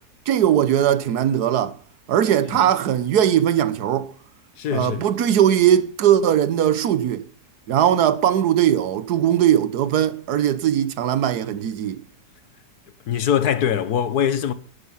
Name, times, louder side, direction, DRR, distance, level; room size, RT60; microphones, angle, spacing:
voice 1, 0.3-1.8 2.1-4.1 4.7-7.2 7.7-12.0, right 10 dB, 75° right, 1.5 m, -19 dB
voice 2, 4.6-5.0 13.1-14.5, left 9 dB, 70° left, 1.5 m, -22 dB
11.5 x 11.0 x 5.7 m
omnidirectional pair, 1.8 m